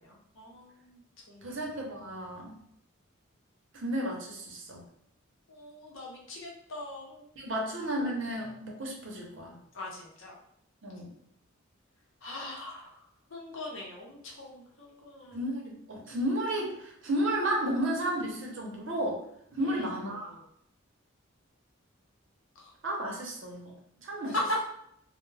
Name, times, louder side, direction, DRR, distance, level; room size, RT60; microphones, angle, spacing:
voice 1, 0.1-1.0 1.3-1.6 5.5-7.6 9.7-10.4 12.2-12.9 13.3-15.4 19.6-19.9 20.3-20.4 22.6-22.7 24.3-24.6, left 1 dB, 65° left, -2 dB, 0.7 m, -39 dB
voice 2, 1.4-2.5 3.7-4.9 7.4-9.6 10.8-11.1 15.3-19.2 19.5-20.4 22.8-24.3, right 1 dB, 60° right, -1 dB, 0.7 m, -33 dB
2.2 x 2.1 x 3.2 m, 0.72 s
head